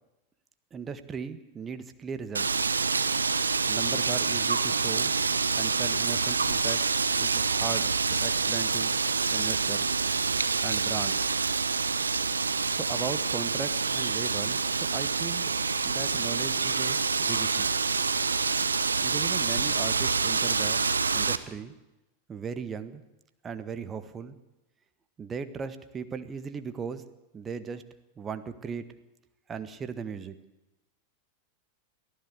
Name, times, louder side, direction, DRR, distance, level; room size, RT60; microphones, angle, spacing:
voice 1, 0.7-2.5 3.7-5.1 5.5-6.8 7.2-8.9 9.3-9.9 10.6-11.3 12.7-15.6 15.8-17.7 19.0-20.9 21.1-21.7 22.3-23.0 23.4-24.4 25.2-27.0 27.3-27.8 28.2-28.8 29.5-30.3, right 6 dB, 20° right, 10 dB, 1.6 m, -37 dB
Wind, 2.3-21.4, right 4 dB, 75° right, 1.0 m, -27 dB
24.0 x 15.0 x 8.3 m, 0.99 s
figure-of-eight pair, 90°, 0 cm